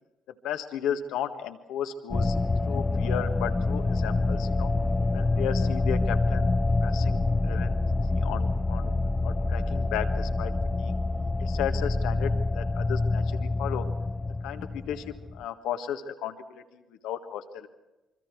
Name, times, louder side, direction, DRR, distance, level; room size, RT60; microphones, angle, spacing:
voice 1, 0.4-2.4 2.7-4.7 5.1-6.5 6.8-7.8 8.1-8.9 9.2-10.9 11.4-13.9 14.4-17.7, left 9 dB, 70° left, 7 dB, 1.6 m, -34 dB
sound 1, 2.1-15.4, left 2 dB, 30° left, 0.9 m, -26 dB
26.0 x 25.0 x 4.7 m, 1.0 s
hypercardioid pair, 45°, 0 cm